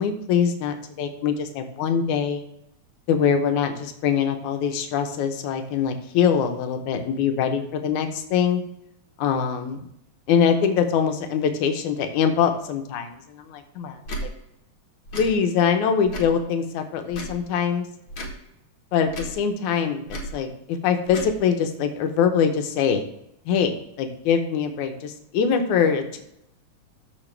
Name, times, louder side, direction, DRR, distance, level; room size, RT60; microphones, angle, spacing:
voice 1, 0.0-2.4 3.1-8.6 9.2-9.8 10.3-14.0 15.1-17.9 18.9-19.1 19.4-23.0 23.5-26.2, left 7 dB, 85° left, 6 dB, 2.3 m, -23 dB
Tick / Tick-tock, 14.0-14.3 15.1-15.3 16.1-16.4 17.1-17.4 18.1-18.4 19.1-19.4 20.1-20.3 21.1-21.3, equal, 50° left, 2.0 m, -33 dB
14.0 x 4.7 x 3.3 m, 0.79 s
omnidirectional pair, 3.3 m